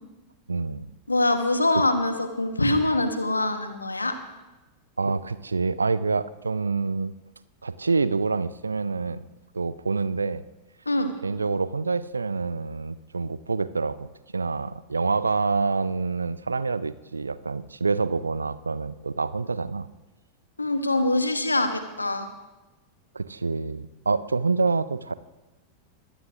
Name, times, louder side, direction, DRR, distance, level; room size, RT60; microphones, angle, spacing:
voice 1, 0.5-0.9 1.7-1.8 5.0-7.1 7.6-9.2 9.5-10.4 11.2-19.9 23.1-25.1, right 4 dB, 75° right, 16 dB, 0.5 m, -27 dB
voice 2, 1.1-4.2 10.9-11.1 20.6-22.3, left 2 dB, 80° left, 8 dB, 1.3 m, -24 dB
22.0 x 15.0 x 2.6 m, 1.1 s
figure-of-eight pair, 90°, 0 cm